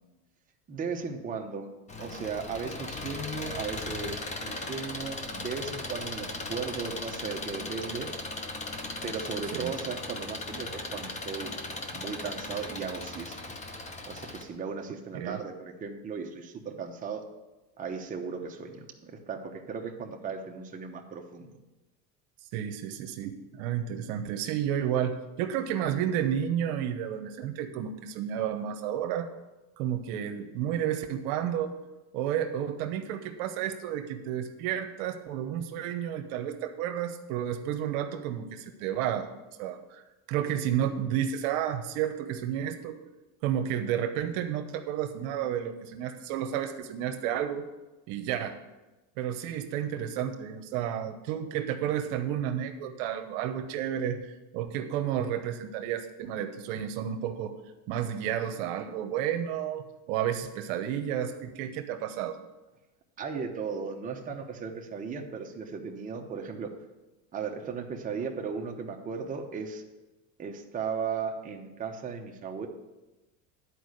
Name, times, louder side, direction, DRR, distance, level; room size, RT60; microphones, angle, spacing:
voice 1, 0.7-1.7 2.0-8.1 9.0-11.5 11.9-13.4 14.1-17.2 17.8-21.6 63.2-66.7 67.3-69.8 70.4-72.7, right 5 dB, 20° right, 2 dB, 0.9 m, -36 dB
Engine, 1.9-14.4, left 2 dB, 15° left, 0.8 m, -38 dB
voice 2, 22.5-29.3 29.8-31.7 32.1-39.3 39.6-40.0 40.3-43.0 43.4-47.7 48.1-48.6 49.2-54.3 54.5-57.5 57.9-62.4, right 10 dB, 70° right, 8 dB, 1.0 m, -31 dB
10.0 x 4.7 x 6.5 m, 1.1 s
supercardioid pair, 130°, 43 cm